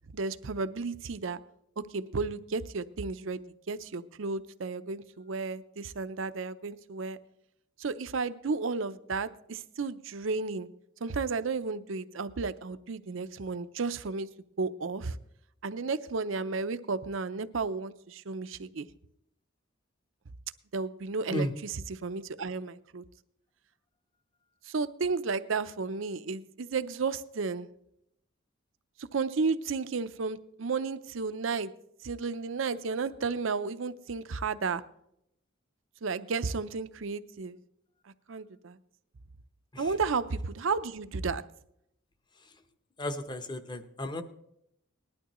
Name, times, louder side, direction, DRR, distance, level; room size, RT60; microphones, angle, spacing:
voice 1, 0.1-1.4 1.8-3.4 3.7-7.2 7.8-10.7 11.0-14.3 14.6-15.2 15.6-18.9 20.7-23.0 24.7-27.7 29.0-31.7 32.0-34.8 36.0-37.6 38.3-38.8 39.8-41.4, right 4 dB, 65° right, 13 dB, 0.6 m, -33 dB
voice 2, 43.0-44.2, left 1 dB, 20° left, 9 dB, 0.8 m, -34 dB
19.5 x 11.5 x 3.0 m, 0.76 s
head